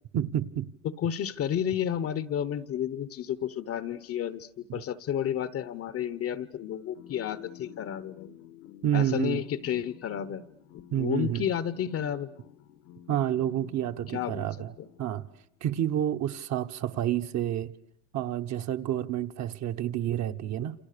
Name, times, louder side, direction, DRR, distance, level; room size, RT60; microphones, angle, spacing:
voice 1, 0.1-0.7 4.7-4.8 8.8-9.4 10.9-11.5 13.1-14.7 15.0-15.3 15.6-17.7 18.1-20.7, right 11 dB, 45° right, 1.2 m, -29 dB
voice 2, 1.0-8.3 8.9-10.5 11.0-12.3 14.1-14.5, left 9 dB, 35° left, 1.0 m, -31 dB
sound 1, 6.7-15.5, left 11 dB, 75° left, 1.7 m, -50 dB
28.5 x 27.5 x 6.8 m
cardioid pair, 135°, 39 cm